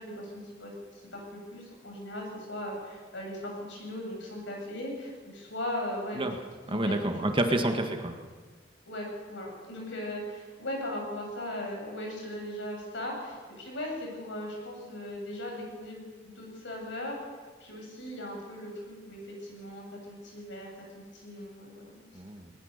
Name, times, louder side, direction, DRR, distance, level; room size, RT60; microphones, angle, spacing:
voice 1, 0.0-6.3 6.7-7.0 8.9-16.1 16.3-17.2 17.6-22.0, left 1 dB, 70° left, 0 dB, 7.7 m, -38 dB
voice 2, 6.7-8.1 22.1-22.5, right 1 dB, 30° right, 5 dB, 1.8 m, -28 dB
21.0 x 19.5 x 6.8 m, 1.5 s
head